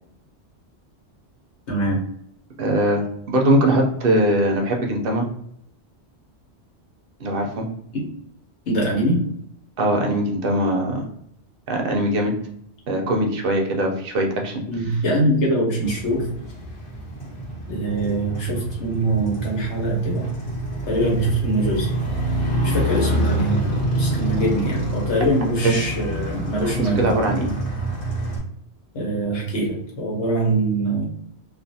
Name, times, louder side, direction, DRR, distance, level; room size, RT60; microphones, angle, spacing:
voice 1, 1.7-2.0 7.9-8.0 8.7-9.2 14.7-16.3 17.7-20.3 20.8-21.9 22.6-27.1 28.9-31.0, right 1 dB, 90° left, -2 dB, 1.2 m, -23 dB
voice 2, 2.6-5.3 7.2-7.6 9.8-11.0 11.7-12.3 12.9-14.6 25.6-25.9 26.6-27.5, right 1 dB, 60° right, 2 dB, 0.7 m, -21 dB
Motorcycle, 15.8-28.4, right 1 dB, 55° left, 1.1 m, -26 dB
2.4 x 2.4 x 2.6 m, 0.71 s
omnidirectional pair, 1.1 m